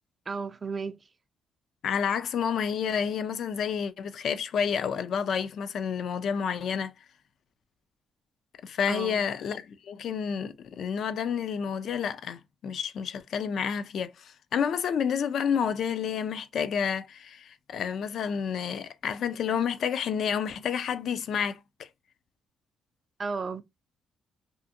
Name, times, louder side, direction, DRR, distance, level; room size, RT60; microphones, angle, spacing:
voice 1, 0.3-1.0 8.9-9.2 23.2-23.6, right 5 dB, 35° right, 0.3 m, -33 dB
voice 2, 1.8-6.9 8.6-21.9, left 7 dB, 65° left, 0.3 m, -30 dB
2.5 x 2.5 x 2.6 m
cardioid pair, 90°, 0 cm